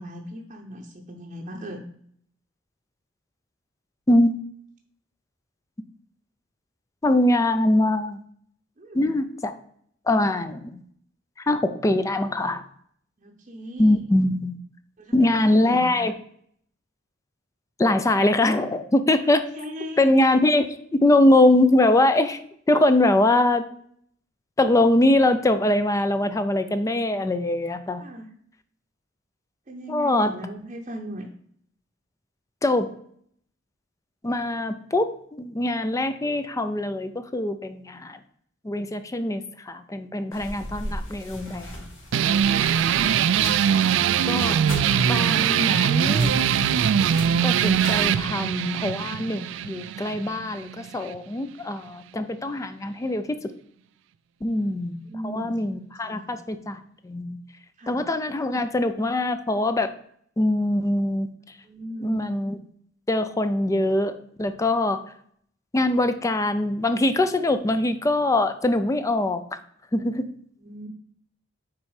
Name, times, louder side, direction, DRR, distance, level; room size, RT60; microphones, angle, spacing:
voice 1, 0.0-1.9 8.8-9.1 13.2-14.0 15.0-16.1 19.2-20.3 28.0-28.3 29.7-31.3 54.6-54.7 55.1-55.6 56.0-56.4 57.8-58.0 61.6-62.2 70.6-70.9, equal, 35° right, -1 dB, 0.7 m, -38 dB
voice 2, 7.0-8.2 8.9-9.5 10.1-10.8 11.4-12.6 13.8-14.6 15.1-16.1 17.8-19.4 20.0-22.4 22.7-23.7 24.6-28.0 29.9-30.3 32.6-32.9 34.2-38.2 38.6-41.8 43.7-43.9 44.2-44.6 45.1-46.3 47.4-53.5 54.4-57.4 57.9-59.9 60.4-61.3 62.0-62.6 63.1-65.0 65.7-69.6 69.9-70.3, left 1 dB, 15° left, 10 dB, 0.4 m, -23 dB
sound 1, 40.3-48.3, equal, 85° left, 2.5 m, -38 dB
sound 2, 42.1-51.2, right 8 dB, 70° right, 0.3 m, -22 dB
6.1 x 4.3 x 4.8 m, 0.64 s
head